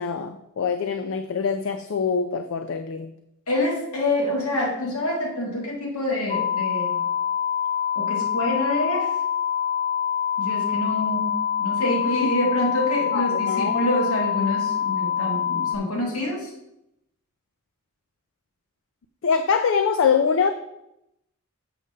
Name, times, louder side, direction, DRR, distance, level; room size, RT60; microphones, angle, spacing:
voice 1, 0.0-3.1 13.1-13.9 19.2-20.5, left 6 dB, 60° left, 9 dB, 0.4 m, -24 dB
voice 2, 3.5-7.0 8.0-9.1 10.4-16.5, left 1 dB, 90° left, -2 dB, 2.1 m, -26 dB
sound 1, 6.3-15.8, left 8 dB, 40° left, 1.0 m, -25 dB
6.9 x 6.5 x 3.7 m, 0.84 s
head